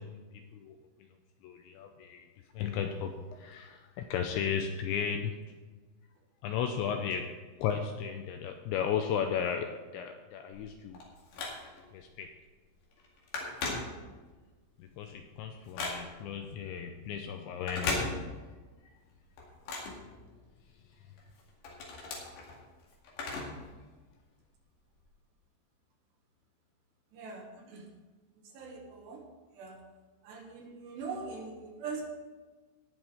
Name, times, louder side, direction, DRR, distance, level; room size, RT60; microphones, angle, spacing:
voice 1, 1.4-2.3 2.6-5.4 6.4-7.3 7.6-11.0 11.9-12.3 14.8-18.1, left 7 dB, 85° left, 5 dB, 2.7 m, -34 dB
Telephone, 10.5-12.0 12.4-12.7 12.9-14.4 14.8-16.4 17.5-18.6 19.0-20.7 21.2-23.7 24.0-24.1 25.0-25.1, left 3 dB, 60° left, 3.9 m, -38 dB
voice 2, 27.1-27.9 28.4-29.2 29.5-29.8 30.2-32.0, right 4 dB, 70° right, 1 dB, 3.1 m, -42 dB
18.5 x 6.2 x 4.9 m, 1.3 s
omnidirectional pair, 5.8 m